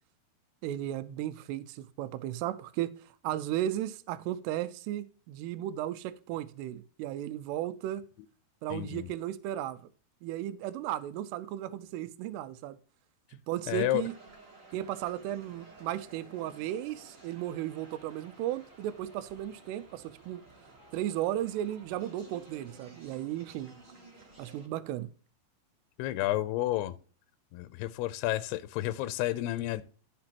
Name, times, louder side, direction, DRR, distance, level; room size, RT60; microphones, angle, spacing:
voice 1, 0.6-8.1 8.6-9.9 10.2-12.8 13.5-14.1 14.7-20.4 20.9-23.8 24.4-25.1, right 12 dB, 85° right, 2.7 m, -35 dB
voice 2, 8.7-9.1 13.7-14.0 26.0-26.9 27.5-29.8, left 15 dB, 85° left, 2.4 m, -31 dB
sound 1, 14.0-24.7, right 2 dB, 35° right, 1.2 m, -54 dB
13.0 x 5.9 x 2.9 m
omnidirectional pair, 4.8 m